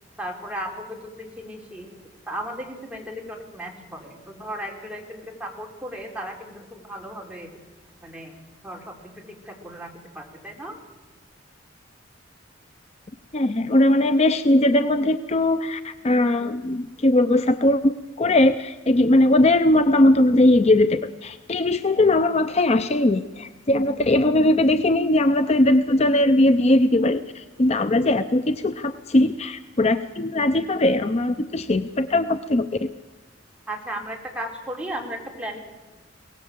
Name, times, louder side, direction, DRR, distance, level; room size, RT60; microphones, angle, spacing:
voice 1, 0.2-1.9 2.3-7.5 8.0-8.3 8.6-10.8 33.7-35.6, right 1 dB, 5° right, 0 dB, 3.7 m, -35 dB
voice 2, 13.3-32.9, left 1 dB, 35° left, 11 dB, 0.6 m, -20 dB
22.5 x 18.5 x 7.5 m, 1.2 s
head